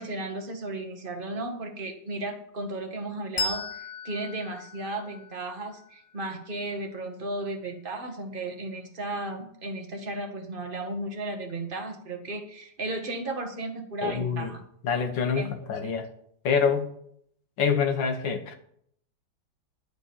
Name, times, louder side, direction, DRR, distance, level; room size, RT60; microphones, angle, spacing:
voice 1, 0.0-14.6 15.3-15.9, right 2 dB, 30° right, 4 dB, 1.6 m, -35 dB
Bell, 3.4-6.4, left 3 dB, 45° left, 1.6 m, -36 dB
voice 2, 14.0-14.5 14.8-16.1 16.4-16.9 17.6-18.5, left 6 dB, 85° left, 6 dB, 2.0 m, -26 dB
11.5 x 5.3 x 6.9 m, 0.66 s
omnidirectional pair, 2.0 m